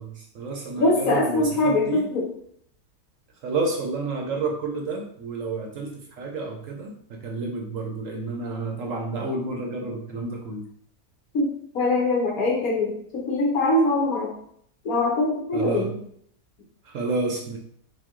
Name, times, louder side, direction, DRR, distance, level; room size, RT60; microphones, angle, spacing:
voice 1, 0.0-2.0 3.4-10.6 15.5-15.9 16.8-17.6, right 3 dB, 65° right, 2 dB, 0.9 m, -30 dB
voice 2, 0.8-2.2 11.3-11.5 11.7-14.3 14.8-15.9, left 2 dB, 65° left, -1 dB, 1.5 m, -22 dB
5.7 x 2.3 x 3.7 m, 0.66 s
omnidirectional pair, 1.7 m